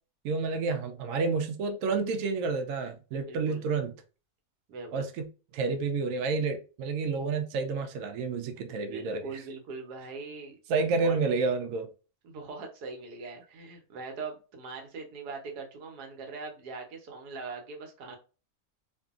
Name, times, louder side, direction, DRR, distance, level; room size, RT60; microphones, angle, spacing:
voice 1, 0.2-3.9 4.9-5.3 5.5-9.4 10.7-11.9, right 4 dB, 70° right, 0.9 m, -29 dB
voice 2, 3.2-3.7 4.7-5.1 8.9-10.6 10.9-11.3 12.2-18.2, right 4 dB, 85° right, 1.3 m, -41 dB
2.6 x 2.6 x 2.4 m
omnidirectional pair, 1.7 m